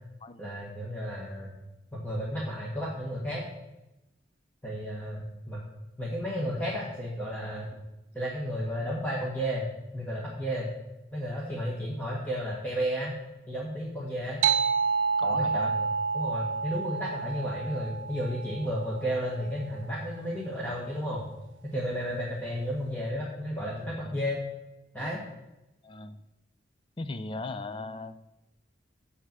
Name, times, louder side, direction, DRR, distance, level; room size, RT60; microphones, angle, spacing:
voice 1, 0.4-1.5 1.9-3.4 4.6-5.6 6.0-7.7 8.1-9.7 9.9-10.7 11.1-13.1 13.5-14.4 15.2-15.8 16.1-21.2 21.7-24.4 24.9-25.2, equal, 10° left, -6 dB, 1.4 m, -32 dB
sound 1, 14.4-19.4, right 5 dB, 70° right, 0.3 m, -29 dB
voice 2, 15.2-15.8 24.0-24.2 25.8-26.2 27.0-28.2, left 3 dB, 25° left, 12 dB, 0.4 m, -37 dB
6.6 x 6.5 x 7.4 m, 0.97 s
head